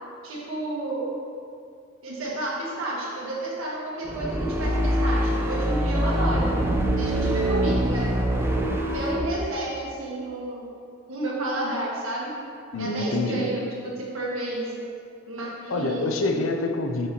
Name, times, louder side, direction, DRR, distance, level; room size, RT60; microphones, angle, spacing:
voice 1, 0.2-1.1 2.0-6.5 6.9-8.1 8.9-10.7 11.1-12.3 12.8-13.7 14.0-14.8 15.3-16.1, right 1 dB, 80° right, -5 dB, 1.4 m, -31 dB
sound 1, 4.1-9.3, right 1 dB, 10° right, 0.3 m, -24 dB
voice 2, 12.7-13.5 15.7-17.1, left 2 dB, 75° left, 4 dB, 0.6 m, -26 dB
6.5 x 5.3 x 2.9 m, 2.3 s
head